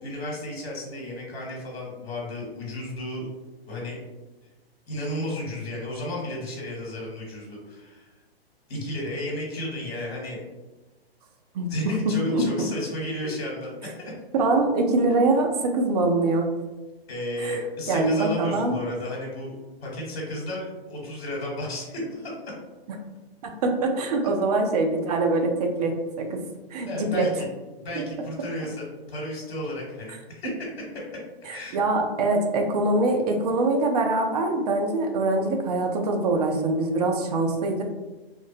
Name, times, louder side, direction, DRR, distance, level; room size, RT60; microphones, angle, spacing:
voice 1, 0.0-3.3 3.7-4.0 4.9-8.1 8.7-10.4 11.7-14.1 17.1-19.6 19.8-22.3 26.9-27.5 27.8-30.5 31.4-31.8, left 1 dB, 70° left, -3 dB, 1.0 m, -33 dB
voice 2, 12.0-12.7 14.4-16.5 17.4-17.6 17.9-18.8 23.4-26.4 26.7-27.3 31.5-37.8, right 2 dB, 40° right, 3 dB, 0.4 m, -24 dB
2.4 x 2.1 x 2.7 m, 1.1 s
hypercardioid pair, 135°, 31 cm